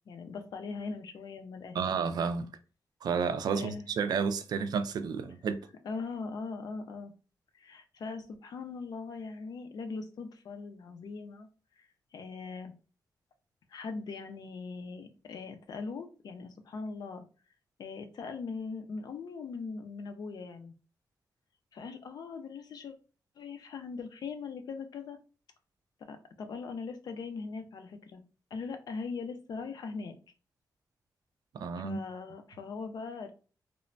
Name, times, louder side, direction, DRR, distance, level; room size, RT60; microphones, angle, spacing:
voice 1, 0.1-1.9 3.5-3.8 5.8-7.1 7.5-11.5 11.8-11.9 12.1-12.7 13.7-17.2 17.8-20.7 21.7-22.9 23.4-25.2 26.0-28.2 28.5-30.2 31.8-33.3, left 4 dB, 70° left, 0.5 m, -40 dB
voice 2, 1.7-2.5 3.0-5.7 31.5-32.0, right 6 dB, 70° right, 0.3 m, -31 dB
3.1 x 2.1 x 2.5 m
wide cardioid pair, 150°, 7 cm